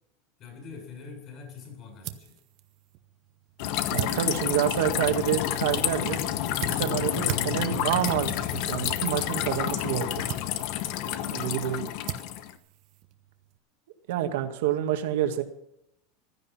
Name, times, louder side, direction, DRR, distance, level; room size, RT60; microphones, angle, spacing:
voice 1, 0.4-2.4 11.0-12.3, left 5 dB, 35° left, 3 dB, 7.2 m, -45 dB
sound 1, 1.5-13.6, right 12 dB, 45° right, 1.0 m, -42 dB
sound 2, 3.6-12.5, left 12 dB, 50° left, 1.1 m, -29 dB
voice 2, 3.9-6.2 6.6-10.2 11.3-11.9 14.1-15.4, right 11 dB, 75° right, 6 dB, 2.0 m, -28 dB
15.5 x 12.5 x 5.8 m, 0.76 s
supercardioid pair, 170°, 0 cm